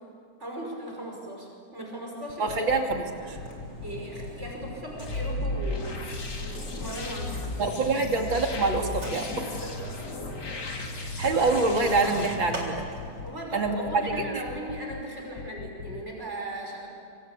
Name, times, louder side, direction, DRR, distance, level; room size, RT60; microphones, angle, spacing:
voice 1, 0.4-2.8 3.1-3.4 3.8-6.0 6.4-7.5 9.6-10.1 13.2-16.9, right 1 dB, 35° right, 0 dB, 5.6 m, -38 dB
sound 1, 2.3-3.0 3.4-4.7 5.1-6.5 6.8-8.2 8.5-9.9 10.2-11.6 11.9-13.3 13.6-15.0 15.4-16.0, left 7 dB, 75° left, 1.9 m, -41 dB
voice 2, 2.4-3.4 7.6-9.5 11.0-12.8 13.5-14.2, right 3 dB, 80° right, 2 dB, 3.4 m, -26 dB
Mechanisms, 2.7-13.5, right 1 dB, 65° right, 4.6 m, -43 dB
sound 2, 5.0-12.4, left 2 dB, 60° left, 3.1 m, -35 dB
26.0 x 25.5 x 8.3 m, 2.3 s
omnidirectional pair, 2.1 m